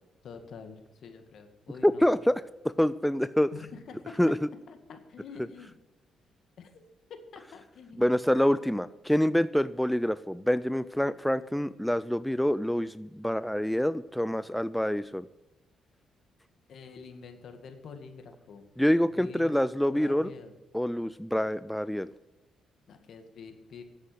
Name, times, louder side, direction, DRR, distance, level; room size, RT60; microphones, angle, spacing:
voice 1, 0.2-2.1 3.5-4.2 4.7-5.8 6.6-6.8 7.3-8.3 16.7-18.6 19.1-19.6 19.9-20.6 22.9-23.8, left 5 dB, 65° left, 6 dB, 2.0 m, -46 dB
voice 2, 1.8-3.5 4.2-4.4 8.0-15.3 18.8-20.3 20.7-22.1, equal, 5° left, 14 dB, 0.4 m, -26 dB
9.8 x 8.3 x 8.0 m, 1.1 s
cardioid pair, 90°, 0 cm